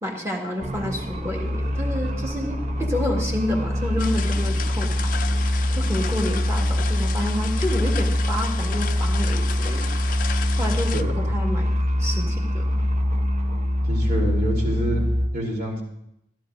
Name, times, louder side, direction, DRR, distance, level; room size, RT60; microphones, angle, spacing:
voice 1, 0.0-9.9 10.6-11.7 12.0-12.7, left 1 dB, 15° right, 0 dB, 1.6 m, -29 dB
sound 1, 0.6-15.3, equal, 40° right, 0.7 m, -24 dB
sound 2, 4.0-11.0, left 8 dB, 50° left, 0.4 m, -34 dB
voice 2, 13.8-15.0 15.3-15.8, right 1 dB, 60° right, -2 dB, 3.1 m, -27 dB
14.0 x 12.5 x 2.6 m, 0.80 s
head